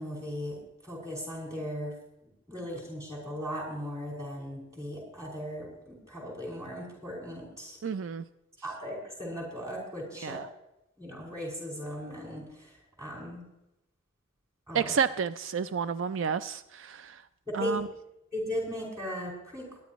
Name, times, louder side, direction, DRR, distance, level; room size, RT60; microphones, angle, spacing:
voice 1, 0.0-1.9 2.2-7.8 8.6-10.4 11.0-13.4 14.7-15.0 17.6-17.8 18.3-19.8, equal, 15° right, -3 dB, 5.6 m, -37 dB
voice 2, 7.8-8.2 10.2-10.5 14.7-17.2 17.5-17.9, right 6 dB, 75° right, 13 dB, 0.4 m, -30 dB
22.5 x 10.5 x 3.1 m, 0.90 s
head